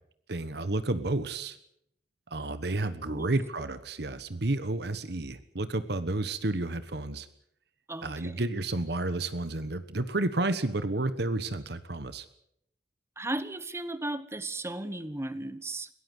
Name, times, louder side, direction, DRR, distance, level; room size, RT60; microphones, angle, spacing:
voice 1, 0.3-1.6 2.3-7.3 8.0-12.3, right 2 dB, 65° right, 12 dB, 1.3 m, -31 dB
voice 2, 7.9-8.4 13.2-15.9, right 1 dB, 15° right, 13 dB, 1.2 m, -35 dB
22.0 x 17.5 x 8.0 m, 0.73 s
head